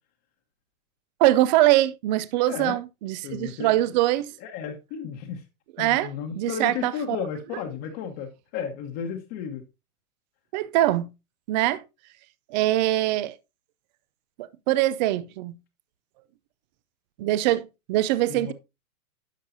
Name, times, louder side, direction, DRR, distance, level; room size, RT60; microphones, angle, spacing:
voice 1, 1.2-4.3 5.8-7.2 10.5-11.1 11.5-11.8 12.5-13.3 14.4-15.6 17.2-18.5, right 15 dB, 35° right, 0.4 m, -23 dB
voice 2, 2.5-2.8 3.2-3.8 4.4-5.4 5.8-9.6 18.3-18.5, left 7 dB, 35° left, 1.2 m, -33 dB
10.5 x 6.5 x 2.7 m
hypercardioid pair, 130°, 43 cm